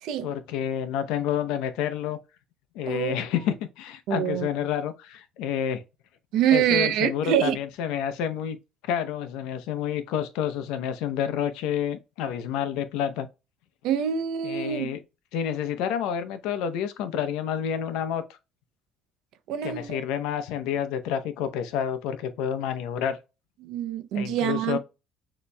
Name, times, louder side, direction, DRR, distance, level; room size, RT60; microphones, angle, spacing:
voice 1, 0.2-2.2 2.7-5.8 6.5-8.6 8.9-13.3 14.4-15.0 15.3-18.2 19.6-23.2 24.1-24.8, left 9 dB, 90° left, 0.7 m, -29 dB
voice 2, 2.9-3.2 4.1-4.5 6.3-7.6 13.8-14.9 19.5-20.0 23.6-24.8, right 9 dB, 70° right, 0.6 m, -25 dB
6.7 x 2.9 x 2.2 m
cardioid pair, 150°, 0 cm